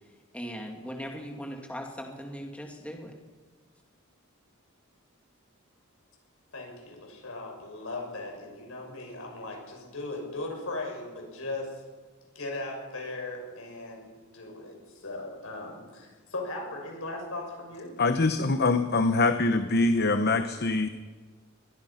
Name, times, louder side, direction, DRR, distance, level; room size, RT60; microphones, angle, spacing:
voice 1, 0.3-3.1, equal, 5° left, 2 dB, 2.2 m, -39 dB
voice 2, 6.5-11.8 12.3-14.1 14.3-17.9, left 2 dB, 70° left, 1 dB, 6.4 m, -38 dB
voice 3, 18.0-20.9, left 3 dB, 50° left, 8 dB, 1.0 m, -24 dB
22.0 x 21.5 x 5.8 m, 1.5 s
head